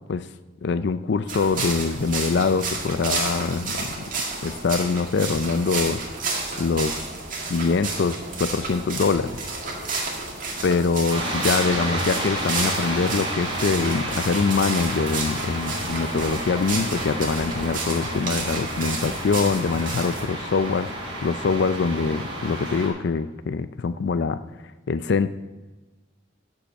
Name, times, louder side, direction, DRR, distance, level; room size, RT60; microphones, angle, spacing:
voice 1, 0.6-4.0 4.4-6.0 6.3-7.0 7.5-9.4 10.6-24.4 24.9-25.3, left 4 dB, 65° left, 13 dB, 0.4 m, -24 dB
sound 1, 1.3-20.2, right 3 dB, 45° right, 2.0 m, -31 dB
sound 2, 11.1-22.9, right 1 dB, 25° right, 3.2 m, -31 dB
13.5 x 5.5 x 5.4 m, 1.2 s
head